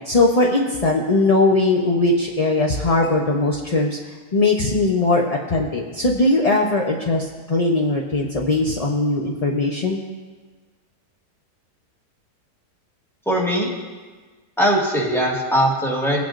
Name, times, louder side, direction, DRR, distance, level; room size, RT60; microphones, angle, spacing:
voice 1, 0.0-4.0 4.3-10.0, left 2 dB, 40° left, -1 dB, 0.5 m, -20 dB
voice 2, 13.2-13.7 14.6-16.2, equal, ahead, -3 dB, 1.7 m, -20 dB
19.0 x 9.2 x 2.5 m, 1.4 s
omnidirectional pair, 1.7 m